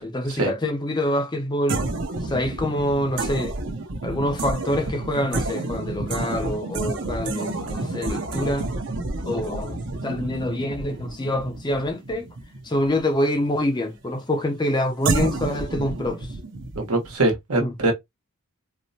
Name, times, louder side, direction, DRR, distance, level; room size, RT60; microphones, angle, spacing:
voice 1, 0.0-1.8 2.2-3.5 4.0-8.7 9.2-12.3 12.6-16.3 17.6-17.7, left 1 dB, 20° left, 0.5 m, -26 dB
sound 1, 1.7-13.5 15.1-17.2, right 2 dB, 55° right, 0.7 m, -29 dB
voice 2, 16.8-17.9, right 2 dB, 80° right, 1.1 m, -23 dB
4.3 x 2.1 x 2.7 m
head